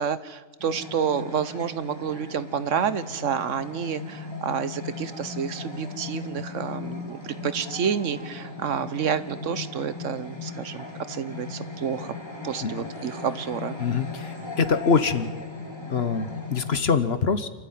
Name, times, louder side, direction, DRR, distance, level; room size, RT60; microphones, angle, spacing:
voice 1, 0.0-12.1 12.4-13.8, right 7 dB, 70° right, 14 dB, 1.3 m, -29 dB
sound 1, 0.6-16.8, left 4 dB, 20° left, 2.3 m, -38 dB
voice 2, 13.8-15.3 15.9-17.5, left 5 dB, 55° left, 12 dB, 1.3 m, -24 dB
28.0 x 13.0 x 9.3 m, 1.3 s
omnidirectional pair, 1.4 m